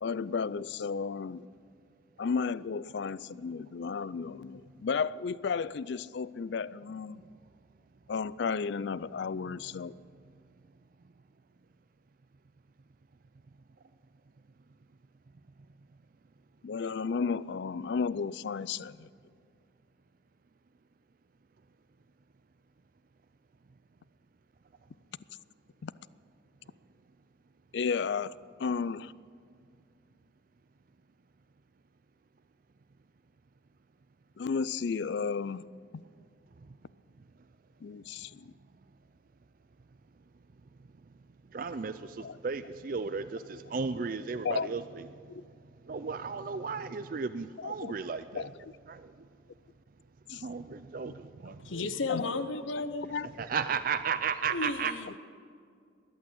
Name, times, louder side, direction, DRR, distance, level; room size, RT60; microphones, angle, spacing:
voice 1, 0.0-1.5 2.2-7.2 8.1-9.9 16.6-19.1 25.8-25.9 27.7-29.1 34.4-35.6 35.9-36.0 37.8-38.5 42.2-42.4 44.4-44.7 45.3-45.4 47.6-47.9 48.3-48.5 50.3-50.4 52.1-52.3 53.0-53.3, left 5 dB, 60° left, 0.4 m, -33 dB
voice 2, 41.5-45.2 45.8-48.5 48.9-49.3 50.3-51.7 53.4-54.9, right 5 dB, 45° right, 0.4 m, -34 dB
voice 3, 51.6-53.3 54.5-55.2, left 3 dB, 85° left, 0.8 m, -34 dB
21.0 x 8.7 x 7.8 m
head